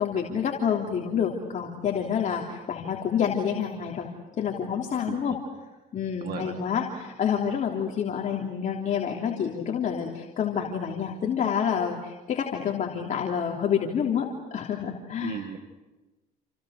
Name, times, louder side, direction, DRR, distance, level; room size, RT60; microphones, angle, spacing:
voice 1, 0.0-4.1 4.4-5.4 5.9-15.4, left 7 dB, 50° left, 0 dB, 3.3 m, -28 dB
voice 2, 5.1-5.4 6.2-6.5 15.2-15.6, right 8 dB, 65° right, 6 dB, 2.2 m, -36 dB
28.5 x 28.5 x 6.6 m, 1.1 s
cardioid pair, 110°, 17 cm